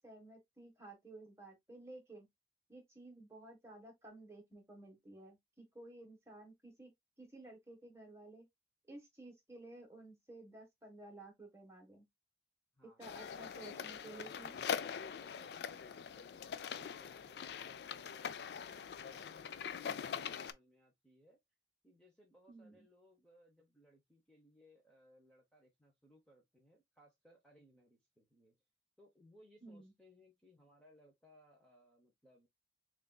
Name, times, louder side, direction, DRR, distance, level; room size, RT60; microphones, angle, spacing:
voice 1, 0.0-2.3 2.7-6.9 7.2-8.5 8.9-12.0 13.0-14.5 22.5-22.9 29.6-29.9, right 2 dB, 15° right, 1.3 m, -54 dB
sound 1, 13.0-20.5, left 7 dB, 65° left, 0.3 m, -43 dB
voice 2, 13.7-21.4 21.8-28.6 29.0-32.5, equal, 5° left, 0.8 m, -66 dB
6.3 x 2.5 x 2.3 m
head